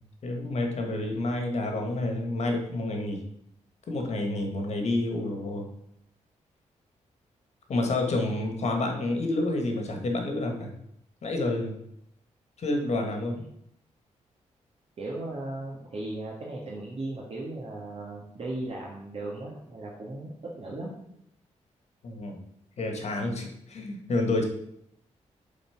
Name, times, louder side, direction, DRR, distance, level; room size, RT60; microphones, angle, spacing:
voice 1, 0.2-3.2 3.9-5.7 7.7-10.7 11.2-11.8 12.6-13.4 22.0-22.4 22.8-24.5, left 2 dB, 60° left, 3 dB, 1.6 m, -29 dB
voice 2, 15.0-20.9, right 2 dB, 50° right, -3 dB, 1.5 m, -37 dB
7.2 x 4.1 x 5.7 m, 0.75 s
cardioid pair, 90°, 13 cm